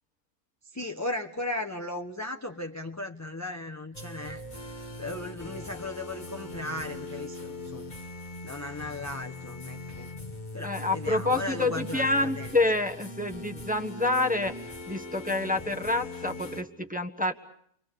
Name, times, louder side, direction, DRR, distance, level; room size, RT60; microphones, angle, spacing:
voice 1, 0.7-4.4 5.0-7.9 8.4-10.1 10.5-12.1 12.3-12.6, left 1 dB, 15° left, 3 dB, 0.9 m, -36 dB
sound 1, 3.9-16.6, left 2 dB, 35° left, 1.7 m, -40 dB
voice 2, 10.6-17.3, left 2 dB, 5° right, 3 dB, 1.3 m, -28 dB
30.0 x 23.5 x 6.9 m, 0.70 s
omnidirectional pair, 1.5 m